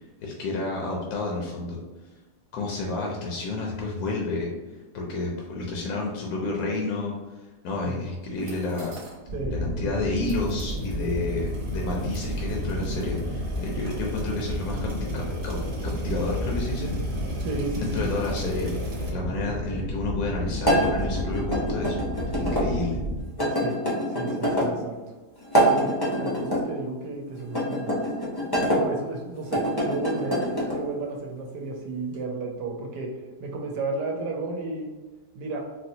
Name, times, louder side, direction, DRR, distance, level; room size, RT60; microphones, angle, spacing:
voice 1, 0.2-1.8 2.5-4.5 4.9-7.1 7.6-8.9 9.5-16.9 17.7-18.7 19.1-22.0 22.4-23.0, left 3 dB, 70° left, -2 dB, 0.9 m, -30 dB
sound 1, 8.3-9.2 9.5-9.6 10.2-19.1, right 1 dB, 60° right, 0.9 m, -43 dB
sound 2, 9.3-23.2, equal, 40° right, 0.4 m, -31 dB
voice 2, 17.4-18.1 23.5-23.8 24.1-25.0 25.5-25.9 26.2-28.0 28.7-34.9 35.3-35.7, right 3 dB, 85° right, 1 dB, 1.2 m, -33 dB
sound 3, 20.6-22.6 23.4-24.7 25.4-26.6 27.5-28.8 29.4-30.8, equal, 40° left, 0.3 m, -25 dB
4.1 x 2.0 x 2.7 m, 1.2 s
omnidirectional pair, 1.8 m